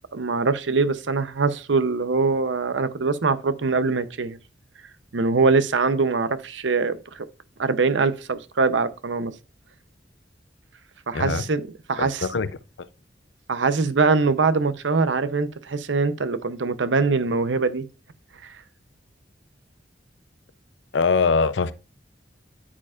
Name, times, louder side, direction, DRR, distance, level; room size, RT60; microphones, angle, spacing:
voice 1, 0.1-4.4 5.1-7.3 7.6-9.3 11.1-12.3 13.5-17.9, right 4 dB, 85° right, 0.7 m, -23 dB
voice 2, 11.1-11.4 12.0-12.5 20.9-21.7, left 4 dB, 80° left, 0.6 m, -22 dB
8.8 x 8.6 x 2.4 m
head